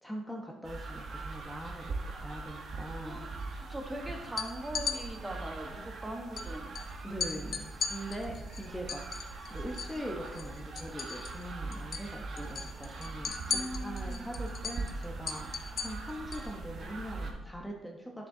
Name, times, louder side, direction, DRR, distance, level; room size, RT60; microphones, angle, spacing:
voice 1, 0.0-3.2 7.0-9.0 9.5-15.5 15.7-18.3, equal, 5° left, -1 dB, 1.0 m, -42 dB
sound 1, 0.6-17.3, right 3 dB, 60° right, 1.3 m, -41 dB
voice 2, 3.0-6.7 13.5-14.2, right 1 dB, 15° right, 3 dB, 1.3 m, -41 dB
sound 2, 4.2-5.0 6.4-6.5 6.7-6.9 7.2-10.0 10.3-11.5 11.7-12.1 12.4-16.5, left 6 dB, 55° left, 0.8 m, -36 dB
10.5 x 6.9 x 2.8 m, 1.0 s
cardioid pair, 90°, 0 cm